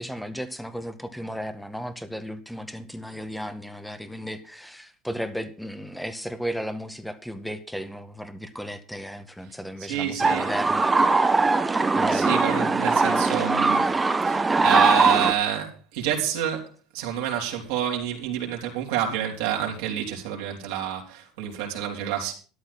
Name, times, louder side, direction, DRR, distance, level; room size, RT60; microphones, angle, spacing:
voice 1, 0.0-10.9 12.0-12.3, equal, ahead, 1.9 m, -34 dB
voice 2, 9.8-10.5 12.1-13.9 14.2-22.3, right 10 dB, 80° right, 3.7 m, -28 dB
sound 1, 10.2-15.3, right 3 dB, 20° right, 1.3 m, -21 dB
13.0 x 11.5 x 4.3 m
hypercardioid pair, 80°, 0 cm